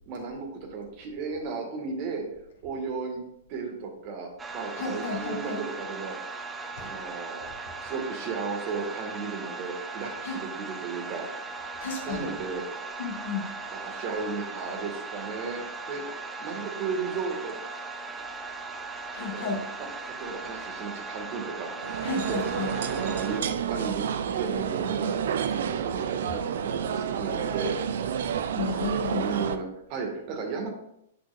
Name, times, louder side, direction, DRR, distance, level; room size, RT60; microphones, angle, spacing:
voice 1, 0.1-2.2 2.6-4.3 4.5-6.2 6.8-7.5 7.8-11.3 12.1-12.7 13.8-15.6 15.9-16.0 16.4-17.5 19.2-21.7 22.2-22.4 22.8-25.2 25.8-27.8 29.2-30.7, right 5 dB, 40° right, 2 dB, 2.1 m, -34 dB
sound 1, 4.4-23.4, right 3 dB, 15° right, 0.8 m, -38 dB
voice 2, 4.8-5.6 6.8-6.9 10.2-10.4 11.8-12.3 13.0-13.5 19.1-19.6 22.0-22.8 28.5-29.3, left 4 dB, 65° left, -1 dB, 2.2 m, -32 dB
sound 2, 21.8-29.6, right 8 dB, 65° right, 0.5 m, -30 dB
9.9 x 6.3 x 2.6 m, 0.77 s
figure-of-eight pair, 110°, 0 cm